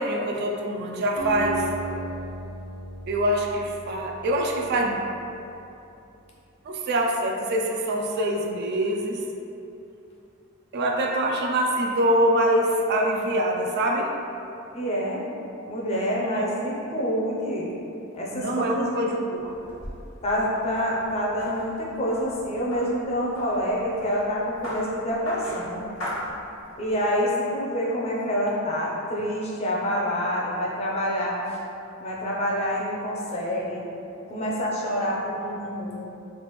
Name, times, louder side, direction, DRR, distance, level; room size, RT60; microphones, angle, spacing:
voice 1, 0.0-1.7 3.1-5.1 6.7-9.2 10.7-14.1 16.2-16.8 18.3-19.5, right 1 dB, 50° right, 0 dB, 0.3 m, -25 dB
Acoustic guitar, 1.2-5.3, right 1 dB, 65° right, 0.7 m, -36 dB
voice 2, 14.7-15.2 15.7-17.7 18.1-19.0 20.2-25.9 26.8-31.6 32.0-33.8 34.3-36.0, equal, 30° left, -5 dB, 0.5 m, -27 dB
sound 1, 19.4-26.9, equal, 75° left, 1.2 m, -39 dB
3.3 x 2.4 x 3.0 m, 2.7 s
head